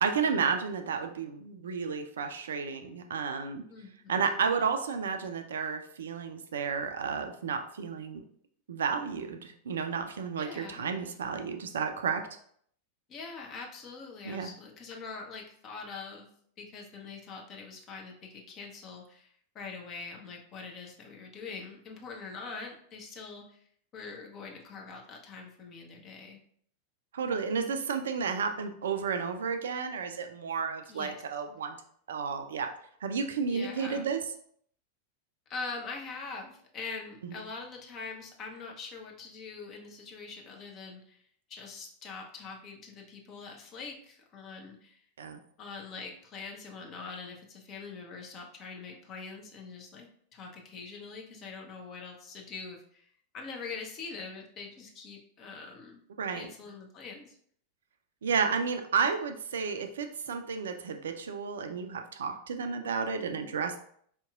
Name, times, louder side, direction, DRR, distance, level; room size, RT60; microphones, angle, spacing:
voice 1, 0.0-3.6 4.1-8.2 8.7-12.2 14.2-14.5 27.1-31.8 32.1-32.7 33.0-34.2 37.2-37.3 45.2-45.4 56.2-56.5 58.2-63.8, right 6 dB, 65° right, 6 dB, 0.4 m, -32 dB
voice 2, 3.7-4.2 10.4-10.8 13.1-16.3 16.6-23.6 23.9-26.4 30.9-31.2 33.5-34.0 35.5-41.2 41.5-45.0 45.6-53.1 53.3-56.0 56.3-57.3, left 4 dB, 30° left, 1 dB, 0.8 m, -43 dB
4.4 x 2.9 x 2.4 m, 0.63 s
figure-of-eight pair, 90°, 0 cm